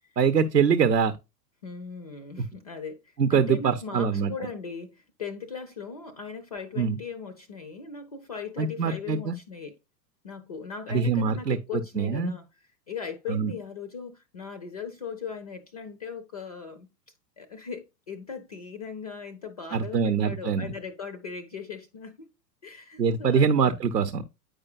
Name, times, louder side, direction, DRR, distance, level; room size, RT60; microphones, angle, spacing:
voice 1, 0.2-1.2 3.2-4.3 6.8-7.0 8.6-9.3 10.9-11.6 12.0-12.3 13.3-13.5 19.7-20.7 23.0-24.2, right 6 dB, 80° right, 0.7 m, -23 dB
voice 2, 1.6-9.8 10.2-16.9 17.4-22.3 22.6-23.8, left 5 dB, 25° left, 0.3 m, -39 dB
9.0 x 4.9 x 2.3 m
figure-of-eight pair, 100°, 50 cm